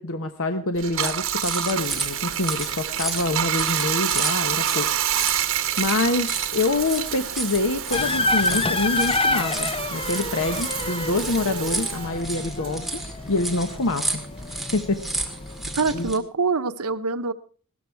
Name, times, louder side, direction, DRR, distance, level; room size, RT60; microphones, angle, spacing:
voice 1, 0.0-4.9 5.8-14.2 14.5-15.0 15.9-16.1, left 2 dB, 65° left, 8 dB, 1.1 m, -26 dB
Bathtub (filling or washing), 0.8-13.6 13.9-15.7, right 10 dB, 65° right, 1.4 m, -28 dB
sound 1, 1.0-16.2, right 2 dB, ahead, 2.1 m, -33 dB
sound 2, 7.9-16.1, left 3 dB, 25° left, 0.6 m, -28 dB
voice 2, 15.8-17.3, right 4 dB, 85° right, 11 dB, 0.8 m, -24 dB
18.0 x 13.5 x 4.6 m, 0.42 s
head